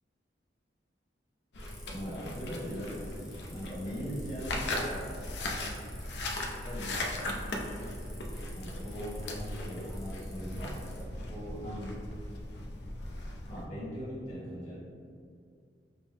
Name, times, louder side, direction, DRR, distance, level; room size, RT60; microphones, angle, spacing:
sound 1, 1.5-13.7, left 1 dB, 65° left, 0.5 m, -38 dB
sound 2, 1.6-11.0, equal, ahead, 0.7 m, -50 dB
voice 1, 1.9-5.1 6.6-7.3 8.5-12.0 13.5-14.8, equal, 40° left, -8 dB, 1.3 m, -40 dB
5.3 x 2.0 x 3.3 m, 2.3 s
head